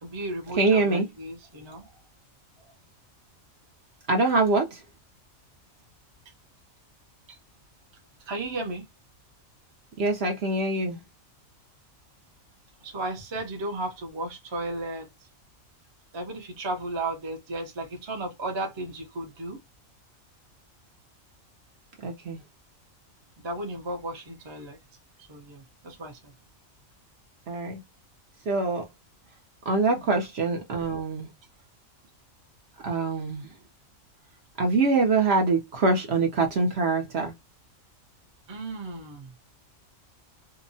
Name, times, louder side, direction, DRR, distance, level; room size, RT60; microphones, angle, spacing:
voice 1, 0.0-1.9 8.3-8.9 12.8-15.1 16.1-19.6 23.4-24.8 25.2-26.3 38.5-39.3, right 2 dB, 25° right, 0.6 m, -34 dB
voice 2, 0.6-1.1 4.1-4.8 10.0-11.0 22.0-22.4 27.5-27.8 28.5-28.8 29.7-31.3 32.8-33.5 34.6-37.3, right 3 dB, 55° right, 0.9 m, -24 dB
2.7 x 2.1 x 2.6 m
omnidirectional pair, 1.4 m